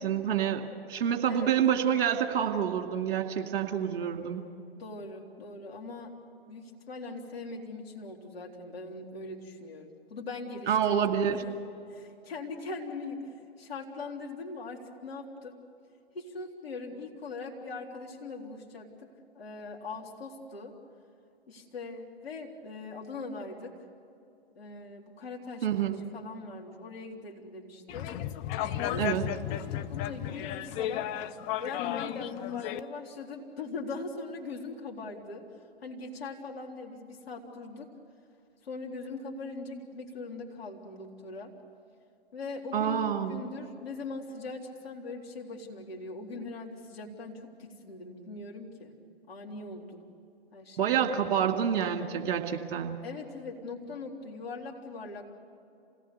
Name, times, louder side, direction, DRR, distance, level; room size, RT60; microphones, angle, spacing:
voice 1, 0.0-4.4 10.7-11.4 25.6-26.0 29.0-29.3 42.7-43.4 50.8-53.0, right 8 dB, 55° right, 4 dB, 2.3 m, -28 dB
voice 2, 4.8-6.2 6.5-11.4 11.9-15.5 16.1-18.9 19.3-20.7 21.5-23.7 24.6-25.7 26.1-28.1 28.8-29.2 29.4-31.1 31.6-35.5 35.8-37.9 38.6-41.5 42.3-48.9 49.3-50.0 50.5-50.9 53.0-55.3, left 3 dB, 65° left, -1 dB, 3.7 m, -41 dB
sound 1, 27.9-32.8, left 12 dB, 20° left, 0.4 m, -34 dB
27.5 x 18.5 x 6.9 m, 2.6 s
figure-of-eight pair, 115°, 32 cm